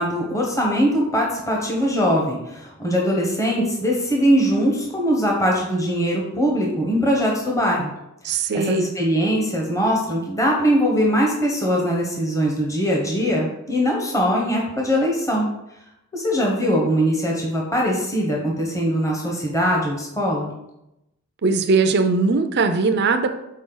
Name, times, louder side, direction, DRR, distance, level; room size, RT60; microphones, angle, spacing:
voice 1, 0.0-7.9 8.5-15.5 16.1-20.5, equal, 15° left, -2 dB, 1.0 m, -21 dB
voice 2, 8.2-8.9 21.4-23.4, right 4 dB, 50° right, 7 dB, 0.5 m, -20 dB
6.3 x 4.3 x 3.9 m, 0.87 s
head